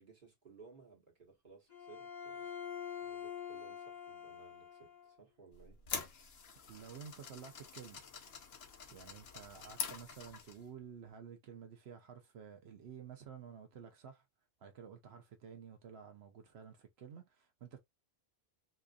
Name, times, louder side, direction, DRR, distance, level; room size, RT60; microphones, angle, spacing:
voice 1, 0.0-2.5 3.0-5.8, right 5 dB, 50° right, 1.4 m, -59 dB
Bowed string instrument, 1.7-5.1, left 8 dB, 40° left, 1.5 m, -46 dB
sound 1, 5.5-10.7, left 6 dB, 70° left, 1.0 m, -45 dB
voice 2, 6.7-8.0 8.9-14.2 14.6-17.8, right 7 dB, 75° right, 0.9 m, -52 dB
4.2 x 2.4 x 2.4 m
omnidirectional pair, 1.1 m